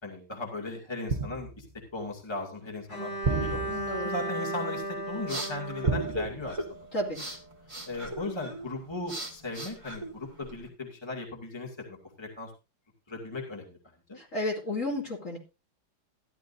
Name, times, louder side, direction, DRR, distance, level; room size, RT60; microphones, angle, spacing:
voice 1, 0.0-1.6 1.9-6.6 7.9-12.5 13.1-13.8 14.1-14.2, left 2 dB, 15° left, 0 dB, 2.3 m, -37 dB
sound 1, 1.1-1.8 3.2-4.2 5.8-6.9 7.2-7.5, right 4 dB, 35° right, 0.8 m, -32 dB
Bowed string instrument, 2.9-6.9, right 1 dB, 65° left, 8.0 m, -36 dB
voice 2, 3.7-4.1 6.9-7.2 14.2-15.4, left 1 dB, 40° left, -1 dB, 2.9 m, -32 dB
sound 2, 4.8-10.7, right 1 dB, 15° right, 1.9 m, -39 dB
14.0 x 11.5 x 2.7 m, 0.28 s
omnidirectional pair, 2.0 m